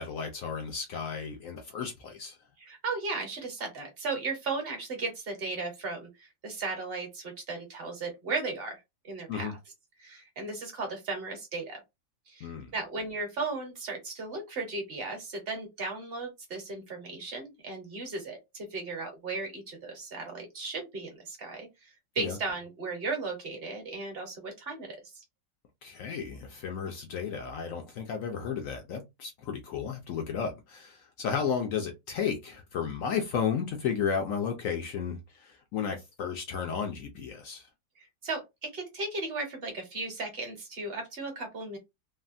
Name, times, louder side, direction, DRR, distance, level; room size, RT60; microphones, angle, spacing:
voice 1, 0.0-2.4 9.3-9.5 12.4-12.7 22.2-22.4 25.8-37.7, left 7 dB, 70° left, 0.8 m, -33 dB
voice 2, 2.6-9.5 10.0-11.8 12.3-25.2 38.0-41.8, right 3 dB, 40° right, 0.9 m, -36 dB
3.3 x 2.1 x 2.5 m
omnidirectional pair, 1.9 m